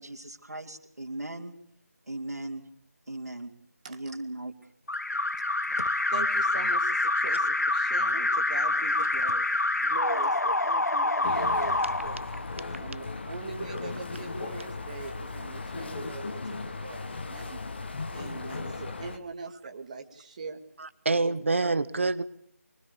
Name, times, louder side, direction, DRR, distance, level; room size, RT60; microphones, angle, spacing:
voice 1, 0.0-1.5 2.1-2.7 3.1-3.5 3.9-4.5, right 2 dB, 80° right, -2 dB, 3.3 m, -38 dB
Alarm, 4.9-12.8, left 2 dB, 85° left, 1.0 m, -26 dB
voice 2, 6.1-9.5 9.8-12.3 12.8-17.6 18.1-20.6 21.2-21.4, right 4 dB, 30° right, 5 dB, 2.3 m, -41 dB
sound 1, 11.2-19.2, left 3 dB, 45° left, 2.0 m, -37 dB
voice 3, 20.8-22.2, right 3 dB, 50° right, 14 dB, 1.4 m, -26 dB
23.5 x 22.5 x 8.3 m, 0.64 s
figure-of-eight pair, 165°, 9 cm